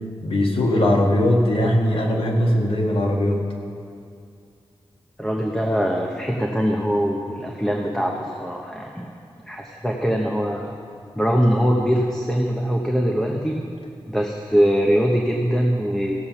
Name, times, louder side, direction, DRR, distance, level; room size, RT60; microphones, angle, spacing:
voice 1, 0.2-3.4, left 1 dB, 75° left, 0 dB, 1.8 m, -20 dB
voice 2, 5.2-9.1 9.4-10.7 11.2-13.6 14.1-16.2, equal, 5° left, 0 dB, 0.9 m, -22 dB
16.0 x 7.5 x 5.8 m, 2.4 s
wide cardioid pair, 105°, 9 cm